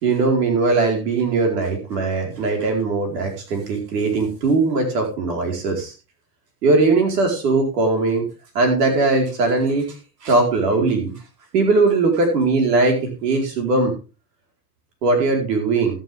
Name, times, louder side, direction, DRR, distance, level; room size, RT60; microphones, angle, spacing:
voice 1, 0.0-5.9 6.6-8.2 8.5-9.9 10.2-11.1 11.5-13.9 15.0-15.9, right 3 dB, 85° right, 2 dB, 4.7 m, -19 dB
14.5 x 11.5 x 3.6 m, 0.32 s
hypercardioid pair, 95°, 47 cm